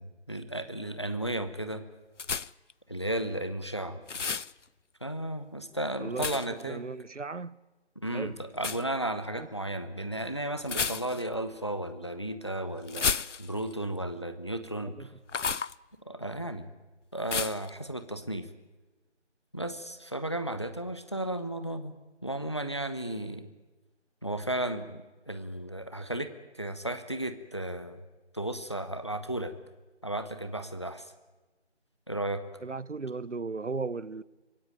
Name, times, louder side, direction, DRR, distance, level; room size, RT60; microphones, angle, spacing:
voice 1, 0.0-1.8 2.9-4.0 5.0-6.8 8.0-15.1 16.1-16.7 17.1-18.5 19.5-21.9 22.2-23.5 24.2-26.3 26.5-28.0 28.3-29.5 30.0-31.1 32.1-32.4, right 1 dB, 25° left, 0.9 m, -34 dB
sound 1, 2.2-2.7 4.1-4.5 6.2-6.6 8.6-8.8 10.6-11.4 12.9-13.7 15.3-15.7 17.3-17.7, left 5 dB, 85° left, 0.7 m, -31 dB
voice 2, 6.6-7.6 8.1-8.4 9.4-9.5 14.8-15.1 32.6-34.2, right 4 dB, 85° right, 0.9 m, -36 dB
26.0 x 16.5 x 9.2 m
figure-of-eight pair, 170°, 35 cm